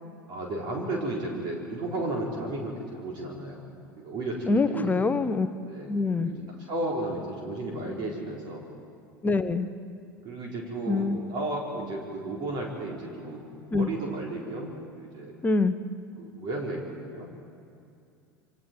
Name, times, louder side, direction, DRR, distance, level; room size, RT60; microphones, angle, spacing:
voice 1, 0.3-3.7 4.0-5.0 5.6-5.9 6.2-8.6 10.2-15.3 16.2-17.3, right 2 dB, 40° right, -2 dB, 4.2 m, -34 dB
voice 2, 4.5-5.5 5.9-6.3 9.2-9.7 10.9-11.2 13.7-13.9 15.4-15.7, left 3 dB, 15° left, 11 dB, 1.1 m, -24 dB
28.5 x 25.5 x 4.6 m, 2.5 s
figure-of-eight pair, 75°, 12 cm